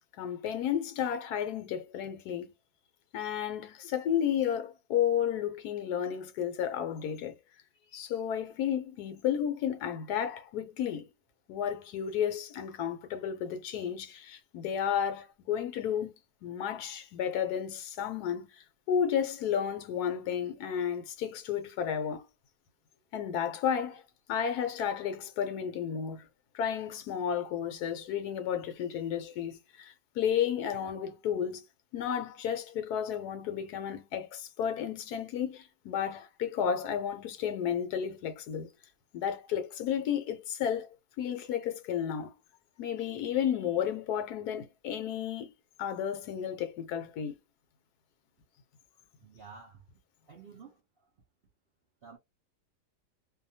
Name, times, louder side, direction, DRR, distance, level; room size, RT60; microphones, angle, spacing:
voice 1, 0.2-2.5 3.1-7.3 7.9-11.1 11.5-16.1 16.4-22.2 23.1-24.0 24.3-26.3 26.5-31.6 31.9-38.7 39.1-40.9 41.2-42.3 42.8-45.5 45.8-47.4, left 8 dB, 75° left, 1.1 m, -32 dB
voice 2, 49.2-49.9 50.3-50.8 52.0-52.2, right 5 dB, 65° right, 0.5 m, -50 dB
2.7 x 2.2 x 2.6 m
omnidirectional pair, 1.8 m